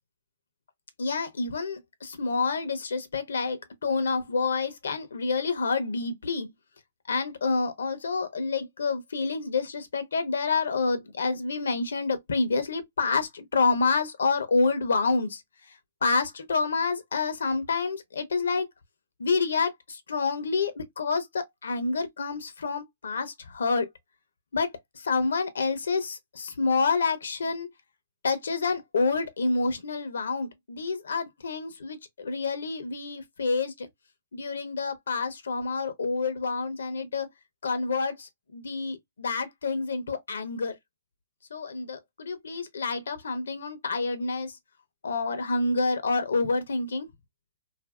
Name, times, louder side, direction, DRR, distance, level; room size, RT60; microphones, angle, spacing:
voice 1, 1.0-6.5 7.1-15.4 16.0-18.7 19.2-23.9 24.5-27.7 28.2-33.9 34.3-37.3 37.6-40.7 41.5-44.5 45.0-47.1, left 4 dB, 85° left, 0.7 m, -28 dB
2.7 x 2.6 x 2.2 m
hypercardioid pair, 135°, 0 cm